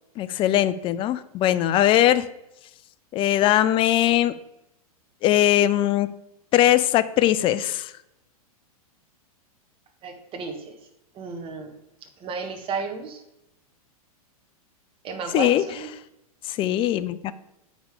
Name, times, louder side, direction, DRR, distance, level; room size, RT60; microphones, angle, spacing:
voice 1, 0.2-2.3 3.1-4.3 5.2-6.1 6.5-7.9 15.3-15.6 16.5-17.3, left 12 dB, 25° left, 14 dB, 0.5 m, -20 dB
voice 2, 10.0-10.7 11.1-11.7 12.2-13.2 15.0-15.9, right 5 dB, 30° right, 3 dB, 1.5 m, -33 dB
8.8 x 5.2 x 5.0 m, 0.86 s
hypercardioid pair, 120°, 19 cm